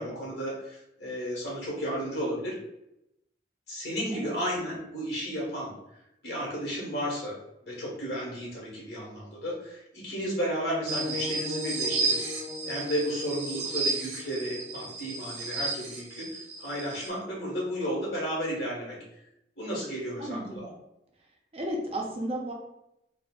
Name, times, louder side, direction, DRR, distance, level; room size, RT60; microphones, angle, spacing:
voice 1, 0.0-2.6 3.7-5.7 6.2-7.4 7.6-12.2 12.6-19.0 19.6-20.7, equal, 80° left, -5 dB, 1.3 m, -33 dB
sound 1, 10.9-17.1, right 2 dB, 85° right, 1.0 m, -32 dB
voice 2, 20.2-20.6 21.5-22.5, right 1 dB, 35° right, 0 dB, 0.5 m, -33 dB
4.1 x 2.0 x 2.3 m, 0.83 s
head